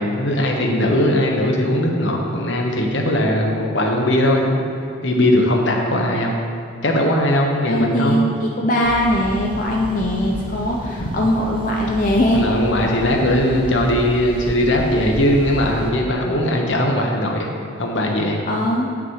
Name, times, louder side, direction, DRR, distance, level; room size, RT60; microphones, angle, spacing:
voice 1, 0.0-4.6 5.0-6.3 6.8-8.2 11.0-11.1 12.3-18.4, left 1 dB, 70° left, 1 dB, 1.1 m, -19 dB
voice 2, 7.7-12.4 18.5-18.9, left 1 dB, 40° left, -2 dB, 0.6 m, -20 dB
sound 1, 8.8-15.9, equal, 25° right, 0.8 m, -31 dB
8.7 x 5.8 x 4.8 m, 2.3 s
head